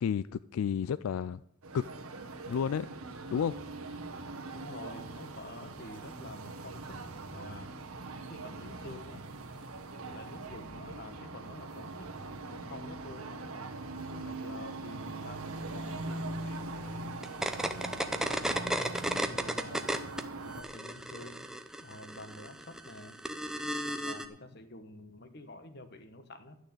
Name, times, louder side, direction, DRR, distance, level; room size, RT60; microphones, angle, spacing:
voice 1, 0.0-1.4 1.7-1.8 2.5-2.9 3.3-3.6, left 7 dB, 80° left, 0.3 m, -31 dB
sound 1, 1.6-20.6, right 2 dB, 85° right, 1.4 m, -42 dB
voice 2, 4.5-7.0 7.3-7.7 8.3-9.2 10.1-12.1 12.5-13.3 14.1-17.2 17.6-19.9 20.4-21.5 21.8-23.2 23.9-26.6, left 1 dB, 50° left, 1.2 m, -48 dB
sound 2, 17.2-20.2 20.5-24.3, right 1 dB, ahead, 0.6 m, -34 dB
12.0 x 6.4 x 8.8 m
head